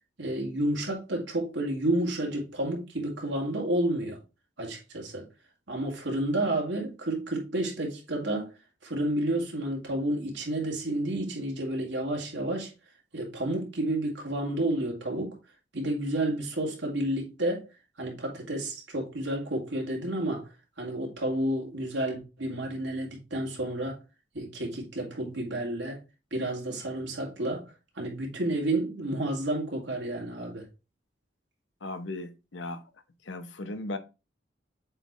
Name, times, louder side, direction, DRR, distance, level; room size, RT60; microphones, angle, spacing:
voice 1, 0.2-4.2 4.6-5.3 5.7-8.5 8.8-12.7 13.1-15.4 15.7-17.7 18.0-20.5 20.8-24.0 24.3-26.0 26.3-30.6, right 1 dB, 90° right, 2.2 m, -30 dB
voice 2, 31.8-32.8 33.2-34.0, left 2 dB, 90° left, 0.8 m, -36 dB
7.6 x 4.0 x 3.1 m
head